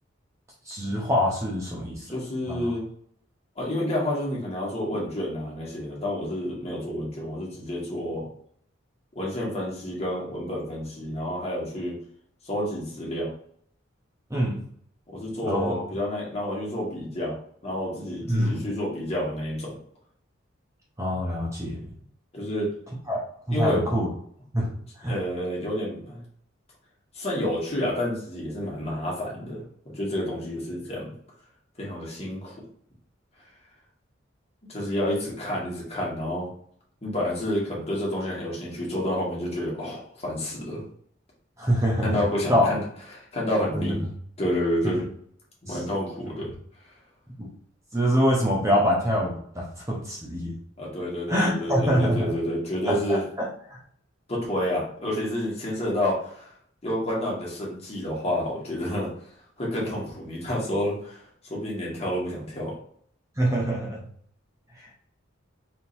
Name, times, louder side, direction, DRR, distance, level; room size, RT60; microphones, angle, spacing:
voice 1, 0.7-2.0 2.5-2.7 14.3-14.6 15.4-15.8 18.3-18.6 21.0-21.8 23.1-24.1 24.5-24.7 25.0-25.2 41.6-42.2 42.5-42.8 43.7-44.0 44.8-44.9 45.7-45.8 47.4-47.5 47.9-50.5 51.3-52.3 52.9-53.5 63.4-64.0, equal, 15° right, -3 dB, 0.8 m, -25 dB
voice 2, 2.1-2.8 3.6-8.3 9.1-12.0 12.4-13.3 15.1-17.4 17.6-19.7 22.3-22.7 23.5-23.8 25.0-26.2 27.1-31.1 31.8-32.5 34.7-36.5 37.0-40.8 42.0-42.8 43.1-44.0 44.4-45.0 45.6-46.5 50.8-53.2 54.3-56.5 56.8-59.1 59.6-61.2 61.5-62.7, left 1 dB, 30° left, -4 dB, 1.5 m, -29 dB
4.4 x 3.7 x 2.6 m, 0.62 s
head